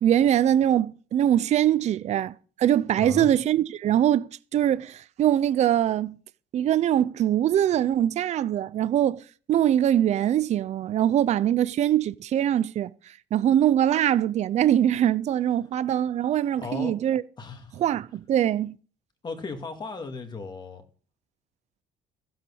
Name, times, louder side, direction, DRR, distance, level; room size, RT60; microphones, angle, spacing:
voice 1, 0.0-6.2 6.5-9.2 9.5-12.9 13.3-17.2 17.8-18.8, right 11 dB, 40° right, 0.5 m, -23 dB
voice 2, 3.0-3.3 16.6-16.9 17.4-17.8 19.2-20.8, left 3 dB, 25° left, 2.1 m, -35 dB
15.5 x 7.8 x 6.3 m
cardioid pair, 170°, 18 cm